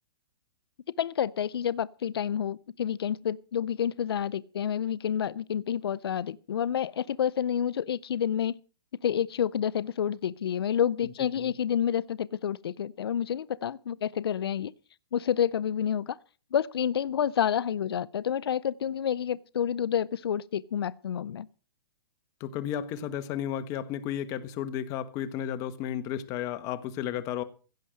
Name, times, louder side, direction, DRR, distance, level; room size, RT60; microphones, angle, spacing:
voice 1, 1.0-8.6 9.0-14.7 15.1-16.2 16.5-21.5, left 9 dB, 90° left, 0.5 m, -29 dB
voice 2, 11.2-11.5 22.4-27.4, left 10 dB, 25° left, 1.2 m, -33 dB
16.0 x 6.5 x 7.6 m
hypercardioid pair, 155°, 13 cm